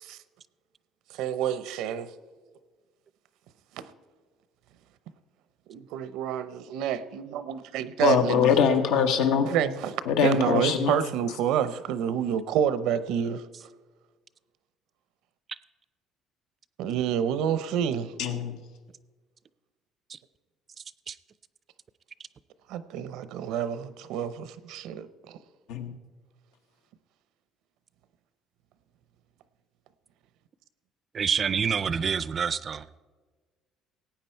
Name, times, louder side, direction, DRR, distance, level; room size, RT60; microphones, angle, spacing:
voice 1, 1.1-2.1 3.8-3.9 5.7-8.5 9.4-10.0 10.2-13.4 16.8-18.1 22.7-25.4, right 9 dB, 80° right, 0.7 m, -28 dB
voice 2, 8.0-9.5 10.1-11.0 18.2-18.6 25.7-25.9, left 7 dB, 90° left, 1.1 m, -23 dB
voice 3, 31.1-32.8, right 6 dB, 30° right, 0.4 m, -27 dB
17.5 x 8.9 x 4.5 m
cardioid pair, 145°, 0 cm